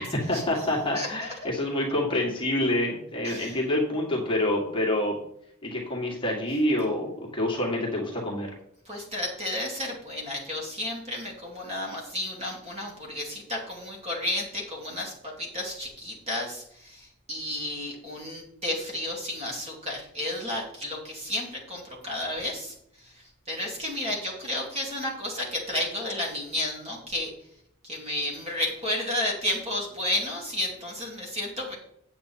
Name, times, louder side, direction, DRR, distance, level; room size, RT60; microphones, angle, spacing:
voice 1, 0.0-5.2 5.6-8.5, left 1 dB, 25° left, -2 dB, 1.9 m, -27 dB
voice 2, 0.9-1.3 3.2-3.6 8.8-27.3 27.8-31.8, left 1 dB, 30° right, -1 dB, 2.7 m, -32 dB
8.4 x 8.0 x 4.3 m, 0.72 s
head